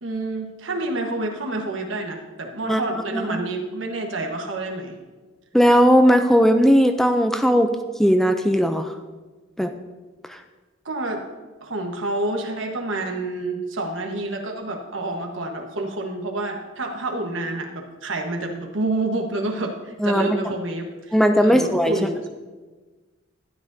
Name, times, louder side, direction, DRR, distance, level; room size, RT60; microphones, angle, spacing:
voice 1, 0.0-5.0 10.8-11.2 11.6-22.3, right 2 dB, 75° right, 3 dB, 1.3 m, -28 dB
voice 2, 5.5-7.7 8.0-8.9 9.6-9.7 10.3-10.4 20.0-20.3 21.1-21.9, equal, ahead, 6 dB, 0.4 m, -17 dB
12.5 x 11.0 x 2.7 m, 1.3 s
head